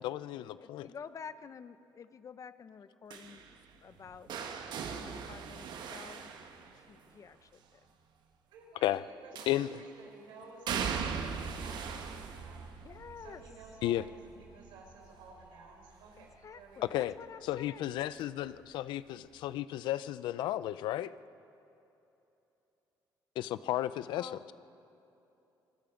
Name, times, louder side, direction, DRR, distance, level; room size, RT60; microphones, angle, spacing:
voice 1, 0.0-0.9 8.8-9.0 9.5-9.8 13.8-14.0 16.9-17.1 17.5-21.1 23.4-24.5, left 13 dB, 80° left, 15 dB, 0.6 m, -33 dB
voice 2, 0.5-4.3 4.9-7.8 12.8-13.4 16.2-17.8 24.1-24.5, left 6 dB, 45° left, 13 dB, 0.8 m, -49 dB
sound 1, 3.1-7.1 9.3-9.9 10.7-16.5 16.8-17.2 18.5-18.6, right 6 dB, 70° right, 1.6 m, -40 dB
voice 3, 8.5-12.7 13.2-16.8, right 3 dB, 85° right, 1 dB, 4.8 m, -54 dB
26.0 x 20.5 x 5.3 m, 2.9 s
cardioid pair, 85°, 8 cm